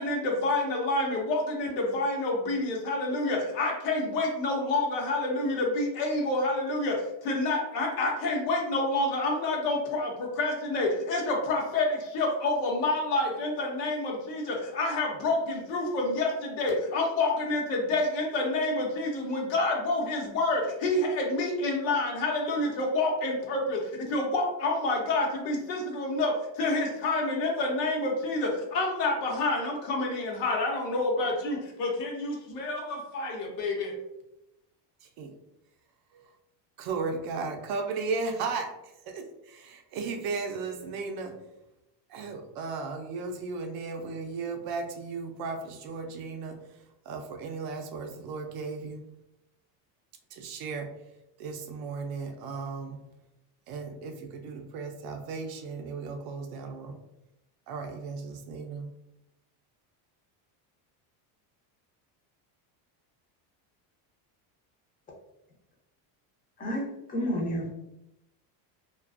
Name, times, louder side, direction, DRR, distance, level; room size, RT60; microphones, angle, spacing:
voice 1, 0.0-34.0, left 2 dB, 90° left, 0 dB, 0.9 m, -28 dB
voice 2, 36.8-38.7 39.1-41.3 42.1-46.6 47.1-49.0 50.3-50.9 51.4-53.0 53.7-57.0 57.7-58.9, right 4 dB, 50° right, 4 dB, 0.5 m, -35 dB
voice 3, 66.6-67.7, equal, 20° left, -1 dB, 0.5 m, -30 dB
2.4 x 2.3 x 2.3 m, 0.88 s
cardioid pair, 135°, 47 cm